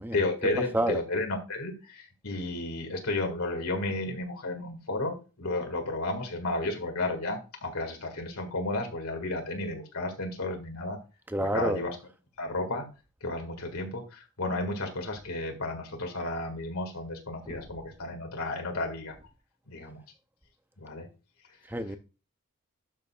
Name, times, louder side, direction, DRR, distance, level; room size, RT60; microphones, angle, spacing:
voice 1, 0.0-11.0 11.4-12.0 12.4-12.9 13.2-19.2 19.7-20.0 20.8-21.1, left 2 dB, 80° left, 2.0 m, -32 dB
voice 2, 11.3-11.8 17.5-17.6 21.7-22.0, right 1 dB, 10° right, 0.5 m, -29 dB
12.0 x 6.5 x 2.4 m
head